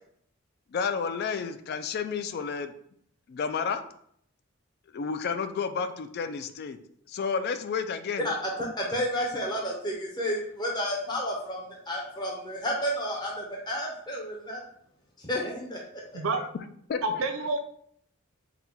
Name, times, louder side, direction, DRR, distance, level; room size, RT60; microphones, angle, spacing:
voice 1, 0.7-2.7 3.3-3.8 4.9-6.8 7.1-8.3 16.4-16.5 16.9-17.0, left 5 dB, 50° left, 10 dB, 0.3 m, -31 dB
voice 2, 8.2-14.6 15.2-15.8, equal, 20° left, -2 dB, 0.7 m, -31 dB
voice 3, 17.0-17.6, right 2 dB, 75° right, 6 dB, 0.5 m, -28 dB
3.9 x 2.2 x 4.4 m, 0.67 s
head